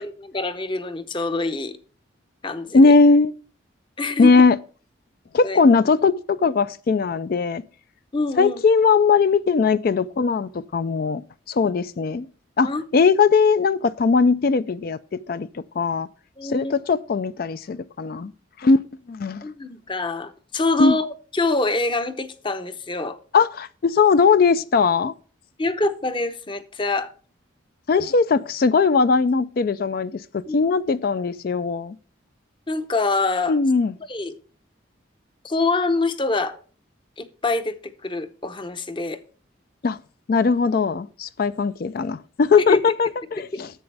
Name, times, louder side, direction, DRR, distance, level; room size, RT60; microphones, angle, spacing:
voice 1, 0.0-1.8 2.4-2.9 4.0-4.3 5.4-5.6 8.1-8.6 12.6-12.8 16.4-16.7 19.4-23.2 25.6-27.1 30.5-30.6 32.7-33.6 34.1-34.4 35.4-36.6 37.2-39.2 42.7-42.8, left 3 dB, 25° left, 0.7 m, -25 dB
voice 2, 2.7-3.3 4.2-4.6 5.3-7.6 8.4-11.2 11.5-12.3 12.6-16.1 16.4-18.3 18.6-18.8 19.1-19.4 20.8-20.9 23.3-25.1 27.9-32.0 33.5-33.9 39.8-40.0 40.3-43.7, left 4 dB, 50° left, 0.3 m, -19 dB
11.0 x 7.8 x 3.3 m
head